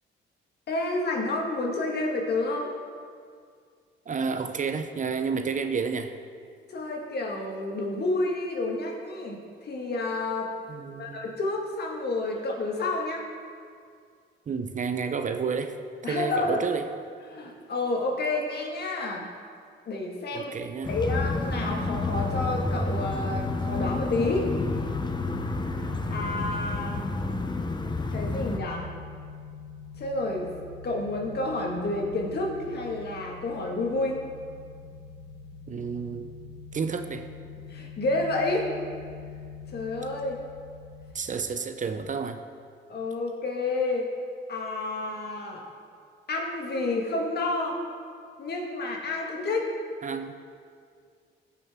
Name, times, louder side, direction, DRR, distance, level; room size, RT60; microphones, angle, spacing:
voice 1, 0.7-2.7 6.7-10.5 11.0-13.3 16.0-16.6 17.3-19.3 19.9-20.5 20.9-24.5 25.8-27.1 28.1-28.9 30.0-30.5 30.8-34.2 37.7-38.7 39.7-40.4 42.9-44.1 44.5-45.7 46.3-47.8 48.4-49.7, left 2 dB, 55° left, 0 dB, 1.9 m, -29 dB
voice 2, 4.1-6.2 10.7-11.2 14.5-16.9 20.3-21.0 35.7-36.3 36.7-37.3 41.1-42.4 50.0-50.4, right 5 dB, 40° right, 8 dB, 0.7 m, -30 dB
sound 1, 20.8-28.6, left 3 dB, 20° left, 0.8 m, -30 dB
sound 2, 24.5-41.1, left 5 dB, 80° left, 1.1 m, -44 dB
16.0 x 6.2 x 3.7 m, 2.2 s
cardioid pair, 90°, 20 cm